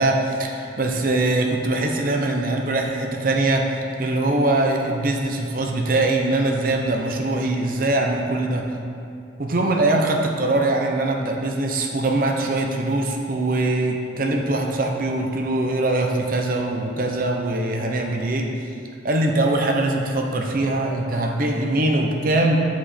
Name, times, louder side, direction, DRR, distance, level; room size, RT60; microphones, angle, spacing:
voice 1, 0.0-8.7 9.4-18.5 19.0-22.6, right 2 dB, 50° right, 2 dB, 0.7 m, -22 dB
7.4 x 5.1 x 4.3 m, 2.5 s
head